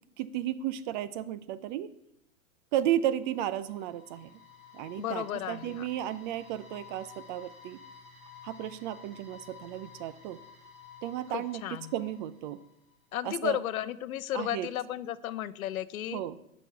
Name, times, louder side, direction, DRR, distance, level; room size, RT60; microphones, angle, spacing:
voice 1, 0.2-1.9 2.7-4.4 4.7-7.8 8.4-10.4 11.0-11.6 11.9-12.6 13.2-13.6 14.3-14.7 16.1-16.4, right 12 dB, 35° right, 14 dB, 0.5 m, -33 dB
sound 1, 2.9-13.0, left 6 dB, 15° right, 3.9 m, -53 dB
voice 2, 5.0-5.9 11.3-11.9 13.1-16.2, left 12 dB, 75° left, 15 dB, 0.7 m, -34 dB
8.2 x 6.2 x 8.0 m, 0.79 s
hypercardioid pair, 120°, 43 cm